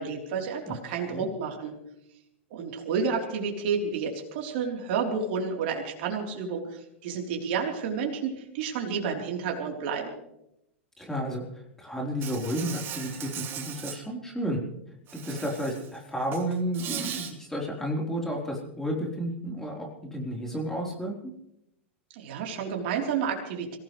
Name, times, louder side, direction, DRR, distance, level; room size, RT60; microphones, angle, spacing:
voice 1, 0.0-1.7 2.5-10.1 22.1-23.8, right 6 dB, 60° right, 1 dB, 3.7 m, -30 dB
voice 2, 0.7-1.3 11.0-14.6 15.1-21.1, equal, 5° left, -1 dB, 4.0 m, -32 dB
Insect, 12.2-14.0 15.1-15.9 16.2-17.3, right 9 dB, 35° right, 2.5 m, -38 dB
25.5 x 16.5 x 3.3 m, 0.82 s
hypercardioid pair, 105°, 6 cm